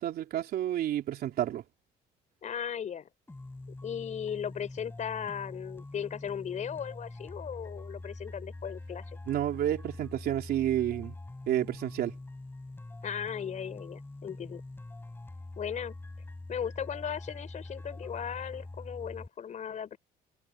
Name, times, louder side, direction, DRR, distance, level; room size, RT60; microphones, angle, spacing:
voice 1, 0.0-1.6 9.3-11.2 11.5-12.2, right 12 dB, 65° right, 3.4 m, -30 dB
voice 2, 2.4-3.1 3.8-9.2 13.0-14.6 15.6-15.9 16.5-20.0, left 8 dB, 45° left, 4.3 m, -37 dB
sound 1, 3.3-19.3, left 2 dB, 10° left, 6.0 m, -44 dB
cardioid pair, 110°, 17 cm